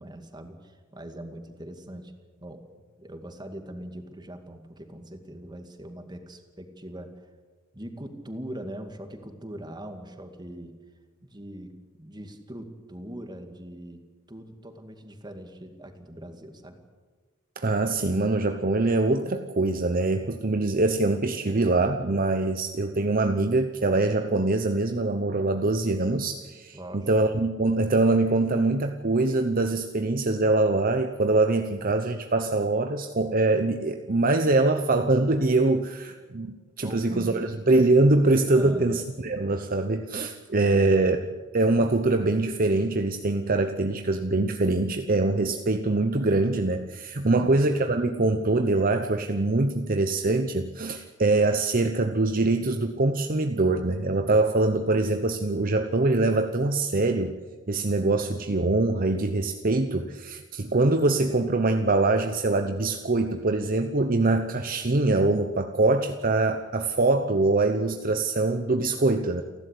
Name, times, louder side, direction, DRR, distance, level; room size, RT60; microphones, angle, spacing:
voice 1, 0.0-2.1 2.4-2.6 3.0-7.3 7.7-10.7 11.2-16.8 26.7-27.2 36.8-37.6 38.5-39.1 40.7-41.3, right 1 dB, 20° right, 6 dB, 2.3 m, -41 dB
voice 2, 17.6-41.2 41.5-57.3 57.7-69.4, right 2 dB, 45° right, 7 dB, 0.9 m, -23 dB
29.5 x 12.0 x 8.4 m, 1.4 s
head